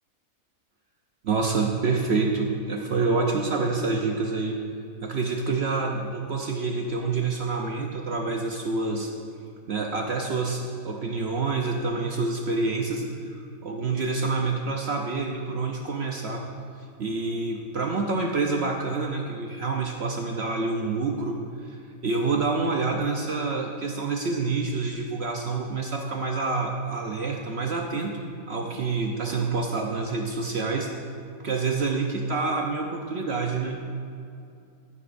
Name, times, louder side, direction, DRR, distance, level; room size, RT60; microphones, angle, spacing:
voice 1, 1.2-4.6 5.0-9.1 9.7-13.0 13.6-16.4 17.0-21.4 21.6-21.8 22.0-28.2 28.5-30.9 31.4-33.8, right 3 dB, 55° right, 1 dB, 0.9 m, -27 dB
13.5 x 9.6 x 2.6 m, 2.5 s
omnidirectional pair, 1.5 m